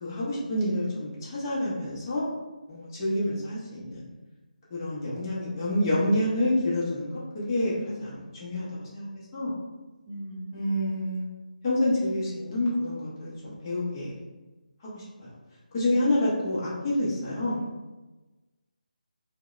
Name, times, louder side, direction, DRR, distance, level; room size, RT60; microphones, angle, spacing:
voice 1, 0.0-2.3 2.7-4.0 4.7-7.7 8.0-8.1 8.4-9.1 9.3-9.5 10.5-11.3 11.6-14.1 14.9-15.3 15.7-17.6, left 1 dB, 25° left, -8 dB, 0.7 m, -28 dB
voice 2, 7.8-8.3 10.1-10.6 15.9-16.1, equal, 30° right, -5 dB, 0.6 m, -40 dB
2.7 x 2.1 x 2.4 m, 1.2 s
figure-of-eight pair, 160°, 5 cm